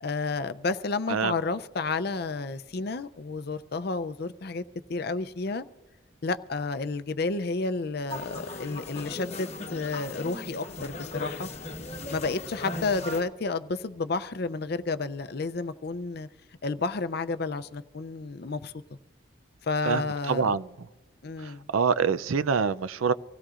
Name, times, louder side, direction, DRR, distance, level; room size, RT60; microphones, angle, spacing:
voice 1, 0.0-4.6 4.9-5.6 6.2-11.5 12.1-16.3 16.6-18.7 19.6-20.5 21.2-21.7, left 3 dB, 50° left, 0.5 m, -31 dB
sound 1, 8.1-13.2, left 2 dB, 35° left, 1.0 m, -38 dB
voice 2, 20.3-20.6 21.4-23.1, right 5 dB, 90° right, 0.5 m, -25 dB
25.0 x 16.5 x 2.5 m
head